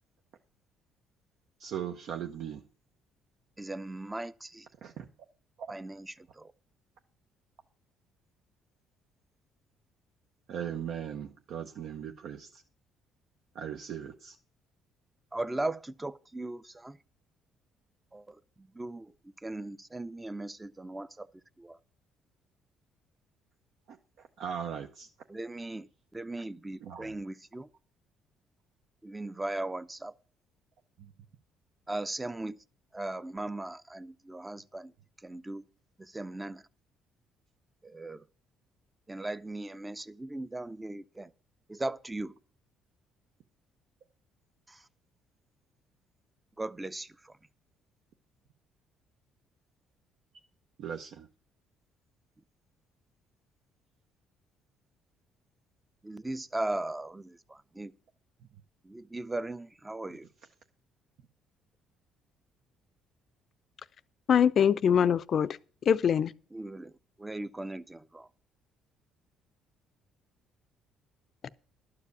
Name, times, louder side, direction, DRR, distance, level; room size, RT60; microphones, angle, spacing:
voice 1, 1.6-2.6 4.8-5.1 10.5-12.6 13.5-14.4 23.9-24.0 24.4-25.1 26.8-27.1 31.0-31.1 50.8-51.3, right 8 dB, 70° right, 0.8 m, -38 dB
voice 2, 3.6-4.7 5.7-6.5 15.3-17.0 18.1-19.1 19.4-21.3 21.6-21.8 25.3-27.7 29.0-30.1 31.9-32.6 32.9-34.9 35.2-35.6 36.0-36.6 37.8-38.2 39.1-41.3 41.7-42.3 44.7-44.8 46.6-47.3 56.0-57.9 58.8-60.3 66.5-66.9 67.2-68.3, right 2 dB, 15° right, 0.6 m, -38 dB
voice 3, 64.3-65.6 65.9-66.3 71.4-71.5, left 8 dB, 50° left, 0.5 m, -23 dB
12.0 x 5.0 x 8.1 m
cardioid pair, 95°, 0 cm